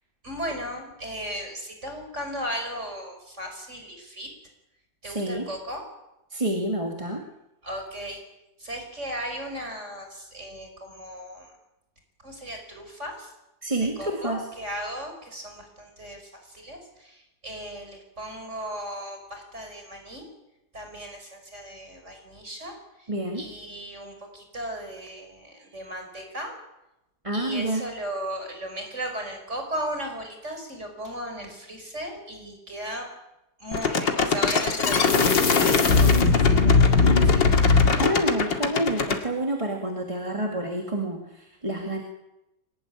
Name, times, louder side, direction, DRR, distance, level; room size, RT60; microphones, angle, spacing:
voice 1, 0.2-4.3 5.0-5.8 7.6-8.2 8.6-11.5 12.2-13.3 13.8-20.3 20.7-23.1 23.4-26.5 27.3-33.1 33.6-37.3, equal, 35° right, 4 dB, 5.6 m, -36 dB
voice 2, 5.0-5.5 6.3-7.2 13.6-14.5 23.1-23.4 27.2-27.8 38.0-42.0, right 1 dB, 15° right, 2 dB, 2.1 m, -28 dB
sound 1, 33.7-39.2, left 4 dB, 65° left, 2.9 m, -19 dB
24.0 x 19.5 x 9.8 m, 0.91 s
omnidirectional pair, 2.2 m